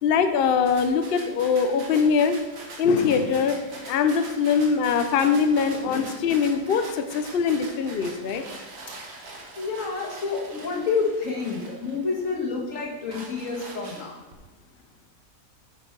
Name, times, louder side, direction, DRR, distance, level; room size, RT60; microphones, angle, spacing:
voice 1, 0.0-2.4 2.8-3.6 3.9-8.4, left 6 dB, 80° left, 8 dB, 0.5 m, -22 dB
sound 1, 0.7-12.3 12.8-14.3, right 2 dB, 55° right, 1.6 m, -42 dB
voice 2, 9.6-14.1, left 4 dB, 50° left, -1 dB, 1.8 m, -28 dB
8.9 x 5.3 x 4.5 m, 1.1 s
omnidirectional pair, 1.8 m